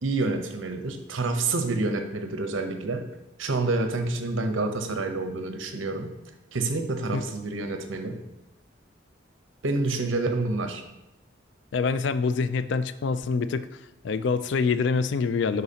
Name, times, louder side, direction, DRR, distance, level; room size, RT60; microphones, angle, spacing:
voice 1, 0.0-3.0 3.4-6.1 6.5-8.2 9.6-10.8, right 3 dB, 80° right, 6 dB, 0.8 m, -28 dB
voice 2, 11.7-13.7 14.0-15.6, left 4 dB, 65° left, 12 dB, 0.3 m, -25 dB
10.5 x 4.0 x 2.8 m, 0.98 s
head